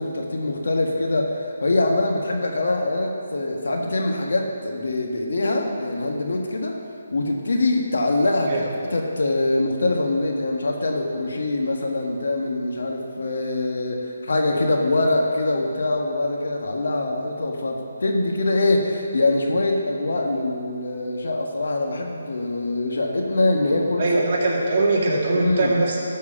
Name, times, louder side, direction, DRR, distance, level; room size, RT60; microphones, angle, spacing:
voice 1, 0.0-6.8 7.1-24.2 25.3-25.7, left 2 dB, 75° left, 1 dB, 1.5 m, -23 dB
voice 2, 24.0-26.0, right 2 dB, 45° right, -4 dB, 2.2 m, -21 dB
12.5 x 4.7 x 6.8 m, 2.4 s
hypercardioid pair, 155°, 0 cm